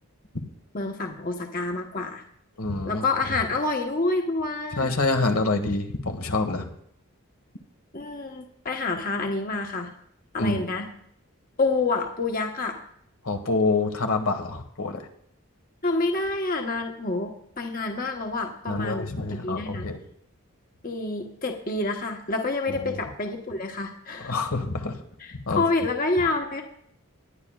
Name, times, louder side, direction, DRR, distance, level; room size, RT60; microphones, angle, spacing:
voice 1, 0.7-2.2 2.8-4.9 7.9-9.9 10.3-10.9 11.6-12.8 15.8-19.9 20.8-24.4 25.2-26.6, left 3 dB, 40° left, 3 dB, 1.0 m, -28 dB
voice 2, 2.6-3.0 4.8-6.7 10.4-10.6 13.2-15.1 18.7-20.0 22.7-22.9 24.2-25.0 25.5-25.6, left 3 dB, 80° left, 6 dB, 1.4 m, -26 dB
20.0 x 10.5 x 2.3 m, 0.68 s
head